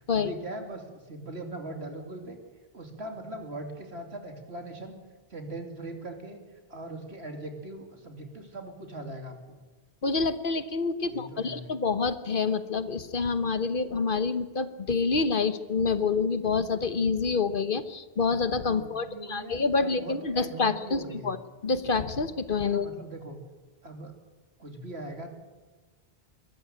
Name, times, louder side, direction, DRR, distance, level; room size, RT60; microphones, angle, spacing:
voice 1, 0.1-2.4 2.7-5.0 5.3-6.4 6.7-9.6 11.1-11.7 18.7-21.4 22.6-23.4 23.8-24.1 24.6-25.3, right 1 dB, 90° right, 4 dB, 3.2 m, -40 dB
voice 2, 10.0-21.4 21.6-22.9, left 4 dB, 55° left, 12 dB, 1.3 m, -27 dB
23.0 x 13.5 x 8.8 m, 1.3 s
omnidirectional pair, 1.0 m